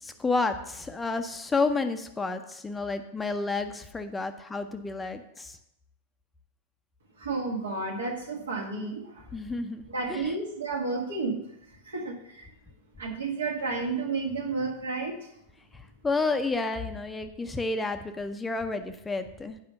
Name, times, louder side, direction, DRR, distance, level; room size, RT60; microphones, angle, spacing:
voice 1, 0.0-5.6 9.3-10.3 15.7-19.6, left 3 dB, 10° left, 8 dB, 0.6 m, -30 dB
voice 2, 7.2-9.3 9.9-11.4 11.8-12.5 13.0-15.2, right 3 dB, 65° right, 3 dB, 1.6 m, -31 dB
8.6 x 5.2 x 6.7 m, 0.80 s
figure-of-eight pair, 90°, 0 cm